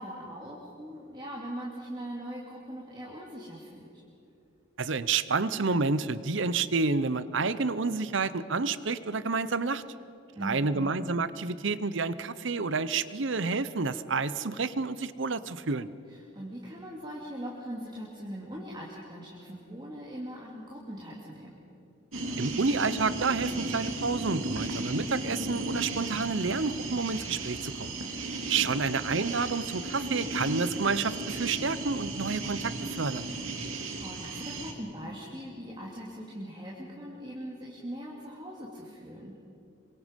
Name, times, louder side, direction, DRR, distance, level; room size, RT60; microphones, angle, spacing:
voice 1, 0.0-4.0 10.3-11.0 16.1-21.6 28.2-28.7 33.6-39.3, equal, 20° right, -4 dB, 2.5 m, -41 dB
voice 2, 4.8-9.8 10.4-15.9 22.4-27.9 28.5-33.2, right 4 dB, 65° right, 15 dB, 0.8 m, -29 dB
sound 1, 22.1-34.7, right 2 dB, 85° right, 2.5 m, -35 dB
27.5 x 24.0 x 5.3 m, 2.7 s
head